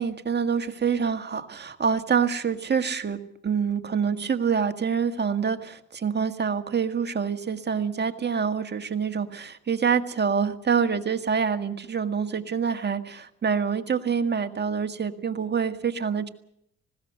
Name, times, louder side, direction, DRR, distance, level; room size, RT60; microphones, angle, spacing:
voice 1, 0.0-16.3, right 6 dB, 35° right, 7 dB, 1.8 m, -26 dB
20.0 x 16.5 x 8.1 m, 0.73 s
cardioid pair, 90°, 30 cm